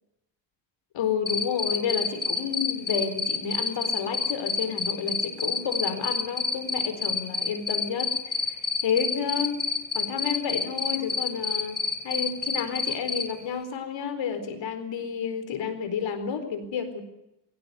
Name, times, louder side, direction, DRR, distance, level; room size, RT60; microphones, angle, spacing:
voice 1, 0.9-9.6 9.9-17.0, left 7 dB, 65° left, 10 dB, 4.4 m, -30 dB
Cricket, 1.3-13.2, left 4 dB, 20° left, 4.3 m, -27 dB
22.5 x 17.5 x 9.7 m, 0.88 s
cardioid pair, 95°, 47 cm